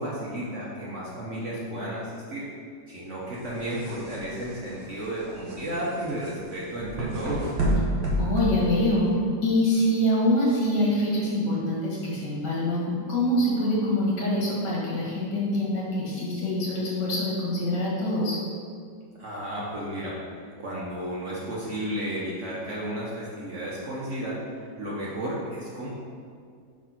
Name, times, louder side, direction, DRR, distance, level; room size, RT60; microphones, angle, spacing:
voice 1, 0.0-2.5 2.9-7.5 19.2-20.2 20.6-25.9, right 1 dB, 50° right, -6 dB, 1.0 m, -33 dB
sound 1, 3.3-9.2, right 1 dB, 75° right, 1.8 m, -30 dB
voice 2, 8.2-9.1 9.4-18.4, left 1 dB, 65° left, -6 dB, 2.2 m, -25 dB
4.9 x 4.2 x 5.8 m, 2.2 s
omnidirectional pair, 2.0 m